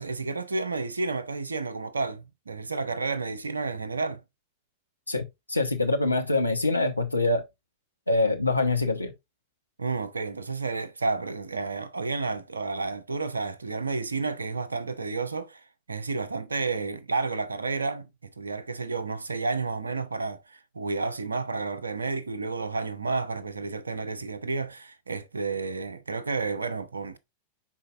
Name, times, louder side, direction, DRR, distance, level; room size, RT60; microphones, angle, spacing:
voice 1, 0.0-4.2 9.8-15.6 15.9-27.2, right 3 dB, 75° right, 0.8 m, -31 dB
voice 2, 5.1-7.4 8.1-9.1, left 2 dB, 85° left, 1.1 m, -25 dB
10.0 x 4.4 x 2.5 m
figure-of-eight pair, 90°, 0 cm